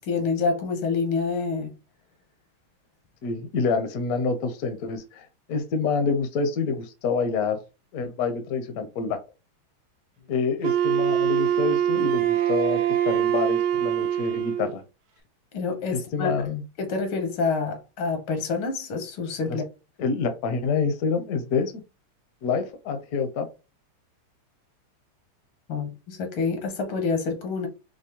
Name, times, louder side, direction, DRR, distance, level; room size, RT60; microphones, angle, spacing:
voice 1, 0.0-1.8 15.5-16.4 16.8-19.6 25.7-27.7, left 4 dB, 80° left, 1.8 m, -27 dB
voice 2, 3.2-7.6 7.9-9.2 10.3-14.8 15.9-16.6 19.5-19.6 20.0-21.7 22.4-23.5, left 5 dB, 65° left, 0.9 m, -27 dB
Wind instrument woodwind instrument, 10.6-14.8, right 10 dB, 70° right, 1.2 m, -23 dB
5.1 x 2.0 x 2.9 m
omnidirectional pair, 2.2 m